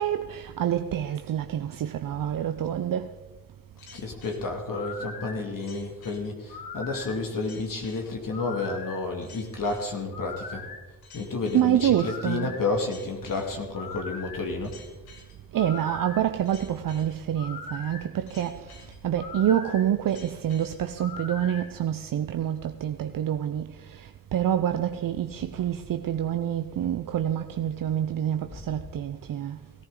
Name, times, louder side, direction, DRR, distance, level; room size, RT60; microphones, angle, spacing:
voice 1, 0.0-3.1 11.5-12.6 15.5-29.6, right 10 dB, 65° right, 0.7 m, -27 dB
sound 1, 3.8-21.7, left 4 dB, 85° left, 1.9 m, -42 dB
voice 2, 3.9-10.6 11.1-14.8, left 3 dB, 60° left, 2.4 m, -31 dB
17.5 x 14.5 x 3.8 m
supercardioid pair, 40°, 37 cm